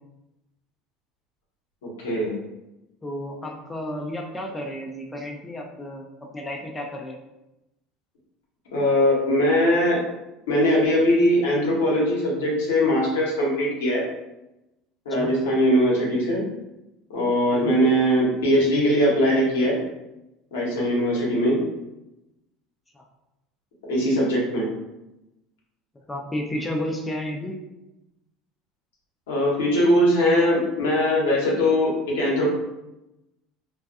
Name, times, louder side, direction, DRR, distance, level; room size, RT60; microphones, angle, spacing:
voice 1, 1.8-2.3 8.7-10.0 10.5-14.0 15.0-16.4 17.1-19.8 20.5-21.6 23.9-24.7 29.3-32.5, equal, 85° left, -4 dB, 0.9 m, -21 dB
voice 2, 3.0-7.2 15.2-15.3 17.5-17.7 22.9-23.0 26.1-27.6, left 1 dB, 15° left, 1 dB, 0.4 m, -32 dB
2.4 x 2.2 x 2.4 m, 0.94 s
hypercardioid pair, 90°, 0 cm